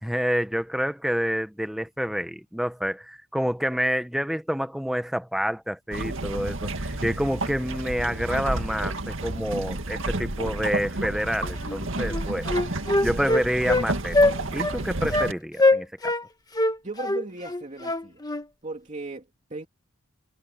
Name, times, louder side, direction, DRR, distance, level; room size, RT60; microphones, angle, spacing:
voice 1, 0.0-12.6 13.0-16.1, equal, ahead, 0.9 m, -28 dB
sound 1, 5.9-15.3, right 2 dB, 65° right, 2.2 m, -31 dB
Wind instrument woodwind instrument, 11.6-11.8 12.1-13.9 14.1-14.4 14.6-14.8 15.1-15.3 15.6-16.2 16.6-18.4, left 2 dB, 20° left, 1.3 m, -22 dB
voice 2, 16.8-18.2 18.6-19.7, right 2 dB, 35° right, 2.7 m, -37 dB
head